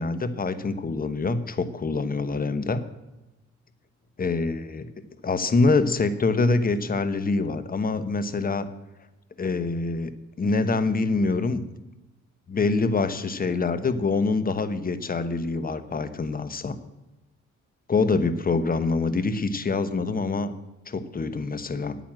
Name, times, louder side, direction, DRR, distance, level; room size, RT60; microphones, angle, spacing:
voice 1, 0.0-2.8 4.2-4.9 5.2-8.7 9.4-10.1 10.4-11.6 12.5-16.8 17.9-20.5 20.9-22.0, left 3 dB, 30° left, 12 dB, 1.1 m, -25 dB
9.1 x 9.1 x 7.6 m, 1.0 s
cardioid pair, 90°, 30 cm